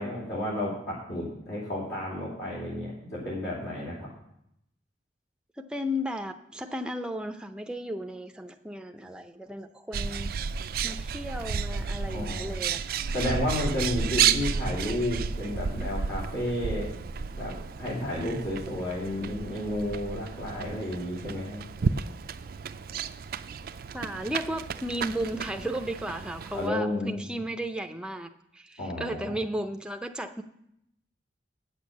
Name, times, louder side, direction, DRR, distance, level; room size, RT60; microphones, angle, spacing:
voice 1, 0.0-4.1 12.1-12.7 13.1-16.9 17.4-21.6 26.5-27.2 28.8-29.3, left 1 dB, 65° left, -6 dB, 2.7 m, -32 dB
voice 2, 5.6-10.3 10.8-13.0 23.9-30.4, equal, 5° right, 5 dB, 0.5 m, -34 dB
Bird, 9.9-26.7, right 6 dB, 50° right, 0.4 m, -32 dB
8.7 x 6.6 x 7.1 m, 0.77 s
head